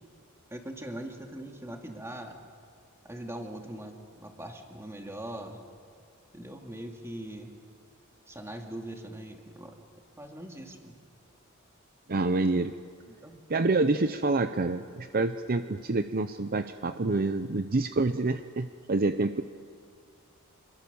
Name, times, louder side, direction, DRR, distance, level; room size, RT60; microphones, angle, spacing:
voice 1, 0.5-2.4 3.0-5.6 6.3-7.5 8.3-9.8 10.2-10.9 13.1-13.4, right 1 dB, 15° right, 2 dB, 2.4 m, -41 dB
voice 2, 12.1-12.7 13.5-19.4, right 3 dB, 45° right, 9 dB, 0.7 m, -27 dB
26.5 x 22.5 x 7.0 m, 2.1 s
head